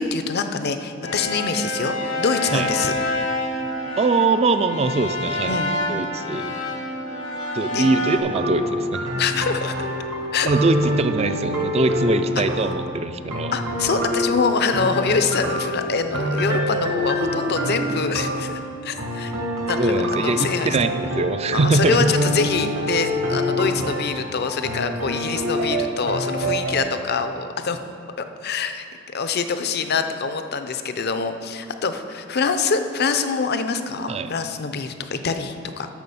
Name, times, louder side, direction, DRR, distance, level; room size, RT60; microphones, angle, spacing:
voice 1, 0.0-2.9 5.5-5.7 7.7-7.9 9.2-9.9 10.3-10.5 12.4-12.5 13.5-19.3 19.7-20.7 21.5-27.8 28.2-35.9, left 5 dB, 50° left, 8 dB, 0.6 m, -25 dB
sound 1, 1.0-8.2, left 1 dB, 85° left, 1.6 m, -27 dB
voice 2, 4.0-5.6 5.9-6.5 7.5-9.1 10.4-13.5 19.8-22.1 34.1-34.3, right 3 dB, 30° right, 10 dB, 0.4 m, -22 dB
sound 2, 8.3-26.8, equal, 65° right, 1.4 m, -26 dB
10.5 x 5.9 x 7.1 m, 2.5 s
head